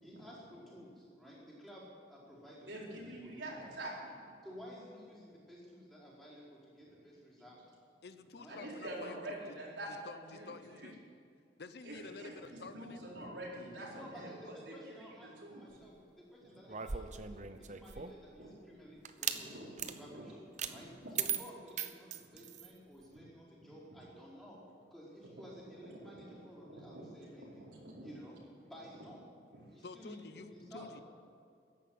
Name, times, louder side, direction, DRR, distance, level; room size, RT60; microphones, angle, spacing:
voice 1, 0.0-3.6 4.4-7.6 8.4-8.6 13.9-19.6 20.0-20.4 20.6-20.9 21.2-24.6 24.9-27.6 28.0-28.4 28.7-29.2 29.7-30.9, equal, ahead, -8 dB, 4.7 m, -53 dB
voice 2, 2.7-4.3 6.9-7.0 8.5-10.9 11.8-15.9 18.4-18.5 18.8-19.0 19.3-20.3 20.6-21.1 26.0-26.4 26.7-27.1 27.4-28.1 30.8-30.9, right 1 dB, 75° right, -4 dB, 4.4 m, -47 dB
voice 3, 8.0-9.2 10.0-11.0 11.6-13.0 29.8-31.0, left 4 dB, 60° left, 11 dB, 0.7 m, -50 dB
sound 1, 16.7-18.3 19.0-19.4 19.8-20.0 20.6-20.7 21.2-22.7, right 8 dB, 40° right, 0.7 m, -38 dB
14.0 x 10.5 x 9.4 m, 2.3 s
head